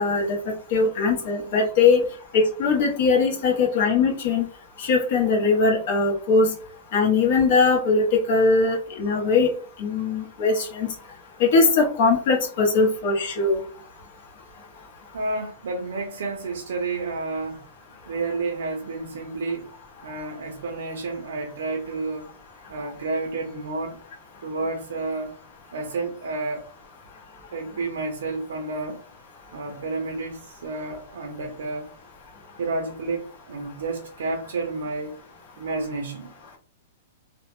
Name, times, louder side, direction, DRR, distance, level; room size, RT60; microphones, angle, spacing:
voice 1, 0.0-2.0 2.3-4.4 4.8-6.5 6.9-9.5 9.8-10.9 11.4-13.6, left 4 dB, 45° left, 0.7 m, -20 dB
voice 2, 15.1-17.7 18.1-19.7 20.0-22.3 22.7-24.0 24.4-25.4 25.7-26.6 27.5-29.0 29.5-31.9 32.6-35.2 35.6-36.3, right 3 dB, 80° right, 0.5 m, -30 dB
2.1 x 2.0 x 2.9 m
hypercardioid pair, 175°, 0 cm